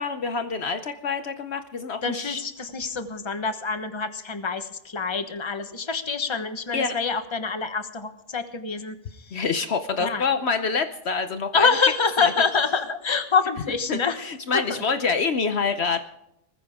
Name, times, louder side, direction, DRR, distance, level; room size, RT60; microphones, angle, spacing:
voice 1, 0.0-2.4 6.7-6.9 9.3-11.7 12.2-12.3 13.9-16.0, left 5 dB, 60° left, 8 dB, 1.1 m, -26 dB
voice 2, 2.0-9.4 10.0-10.2 11.5-14.2 14.5-14.8, left 5 dB, 25° left, 9 dB, 1.2 m, -26 dB
20.0 x 15.0 x 3.6 m, 0.78 s
omnidirectional pair, 1.3 m